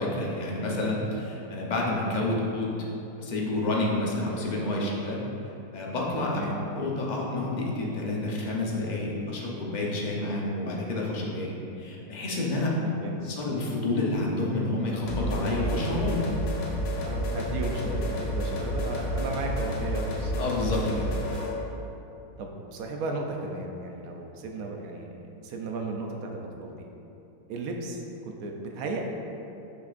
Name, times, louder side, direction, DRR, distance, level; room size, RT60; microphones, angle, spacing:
voice 1, 0.0-2.8 3.2-5.3 5.7-6.4 6.7-12.7 13.2-16.2 20.4-21.1, left 2 dB, 40° left, -3 dB, 0.7 m, -29 dB
voice 2, 6.3-6.6 12.8-13.2 17.0-20.3 22.4-25.1 25.4-26.7 27.5-29.0, right 3 dB, 70° right, 2 dB, 1.1 m, -35 dB
sound 1, 15.1-21.6, equal, 90° left, 1.6 m, -30 dB
6.5 x 5.9 x 2.5 m, 2.8 s
omnidirectional pair, 1.6 m